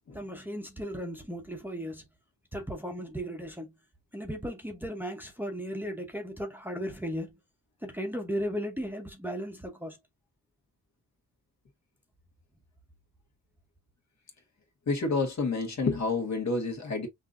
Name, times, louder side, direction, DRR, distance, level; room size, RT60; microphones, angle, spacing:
voice 1, 0.1-2.0 2.5-3.7 4.1-7.4 7.8-10.0, equal, 5° right, 0.8 m, -36 dB
voice 2, 14.9-17.1, left 3 dB, 60° left, 1.6 m, -29 dB
5.8 x 2.6 x 2.5 m
wide cardioid pair, 150°, 32 cm